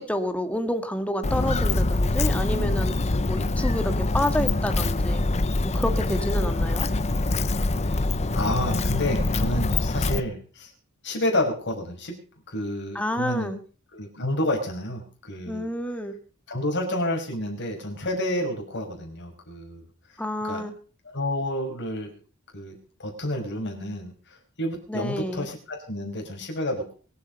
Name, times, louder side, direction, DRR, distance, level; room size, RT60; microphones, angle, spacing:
voice 1, 0.0-2.9 3.2-5.2 5.6-6.9 13.0-13.6 15.5-16.1 20.2-20.7 24.9-25.5, left 1 dB, 5° left, 8 dB, 1.8 m, -29 dB
Walk footsteps, 1.2-10.2, left 2 dB, 30° left, 0.7 m, -24 dB
voice 2, 8.3-10.7 11.0-12.2 12.5-13.5 13.9-15.7 16.5-19.8 20.4-20.6 21.1-22.2 22.5-22.7 23.0-26.9, left 1 dB, 55° left, 2 dB, 5.3 m, -29 dB
23.5 x 8.7 x 5.3 m, 0.40 s
head